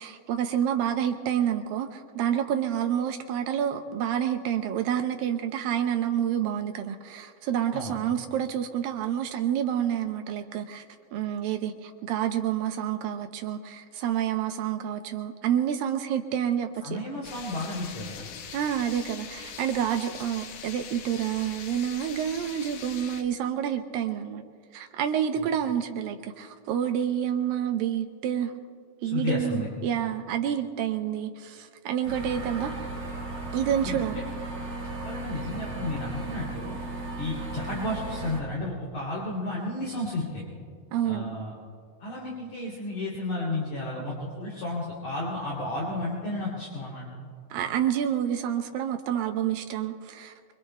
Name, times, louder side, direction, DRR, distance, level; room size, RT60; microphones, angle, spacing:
voice 1, 0.0-10.8 11.1-17.0 18.5-24.4 24.7-28.5 29.0-32.8 33.5-34.2 40.9-41.4 47.5-50.3, right 9 dB, 80° right, 6 dB, 2.2 m, -28 dB
voice 2, 16.8-18.2 25.4-25.5 29.0-29.7 33.8-34.0 34.8-36.8 37.2-40.4 41.0-41.5 42.0-47.3, left 2 dB, 50° left, -5 dB, 3.9 m, -32 dB
sound 1, 17.2-23.2, left 7 dB, 75° left, 1.8 m, -42 dB
sound 2, 32.0-38.4, right 2 dB, 30° right, 4.7 m, -36 dB
25.5 x 24.5 x 2.2 m, 2.1 s
omnidirectional pair, 4.5 m